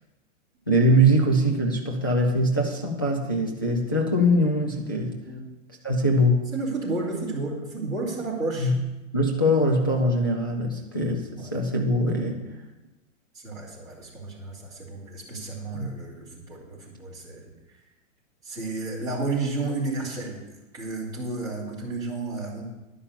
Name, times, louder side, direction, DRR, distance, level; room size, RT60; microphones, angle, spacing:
voice 1, 0.7-5.2 5.8-6.5 8.6-8.7 9.1-12.4 15.7-15.9, equal, 20° left, -2 dB, 0.3 m, -22 dB
voice 2, 6.5-8.7 11.4-11.5 13.3-17.5 18.4-20.4 20.7-22.6, right 3 dB, 10° right, -9 dB, 3.2 m, -32 dB
11.0 x 5.5 x 8.4 m, 1.0 s
hypercardioid pair, 175°, 39 cm